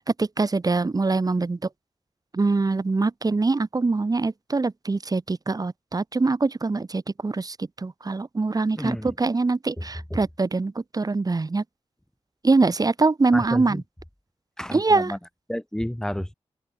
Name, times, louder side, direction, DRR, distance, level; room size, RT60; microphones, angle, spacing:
voice 1, 0.0-1.6 2.3-11.6 12.4-13.8 14.7-15.1, right 3 dB, 35° right, 2.8 m, -23 dB
voice 2, 8.7-9.1 9.8-9.9 10.1-10.2 13.3-13.8 14.6-15.2 15.5-16.3, equal, 5° left, 3.0 m, -30 dB
open air
wide cardioid pair, 90°, 11 cm